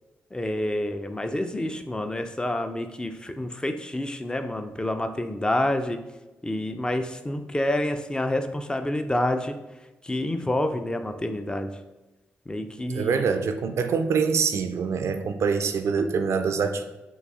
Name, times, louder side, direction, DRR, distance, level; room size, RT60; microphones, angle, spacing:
voice 1, 0.3-6.0 6.4-9.5 10.1-11.7 12.5-13.2, left 1 dB, 15° left, 8 dB, 0.5 m, -28 dB
voice 2, 12.9-16.9, right 5 dB, 65° right, 8 dB, 0.4 m, -25 dB
3.9 x 2.7 x 3.5 m, 1.1 s
hypercardioid pair, 40°, 5 cm